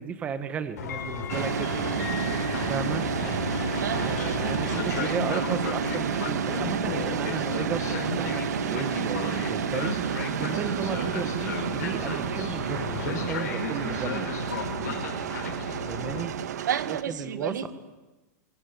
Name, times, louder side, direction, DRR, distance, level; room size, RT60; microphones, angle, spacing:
voice 1, 0.0-1.8 2.7-3.0 4.0-10.0 10.3-14.3 15.9-16.3 17.1-17.5, right 6 dB, 15° right, 11 dB, 1.5 m, -34 dB
Train, 0.8-16.2, left 6 dB, 60° left, 5.7 m, -34 dB
sound 1, 1.3-17.0, right 8 dB, 65° right, 1.8 m, -30 dB
voice 2, 3.8-5.6 10.8-11.2 16.6-17.7, right 9 dB, 90° right, 13 dB, 2.1 m, -33 dB
24.5 x 23.5 x 9.8 m, 1.1 s
supercardioid pair, 175°, 10 cm